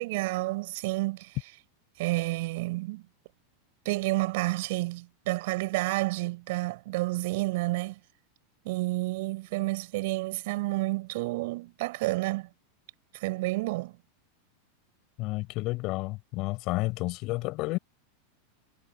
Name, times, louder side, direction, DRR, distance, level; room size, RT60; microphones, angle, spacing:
voice 1, 0.0-1.3 2.0-3.0 3.8-8.0 8.6-12.5 13.1-14.0, right 21 dB, 65° right, 6.6 m, -30 dB
voice 2, 15.2-17.8, left 21 dB, 50° left, 5.2 m, -31 dB
hypercardioid pair, 110°, 0 cm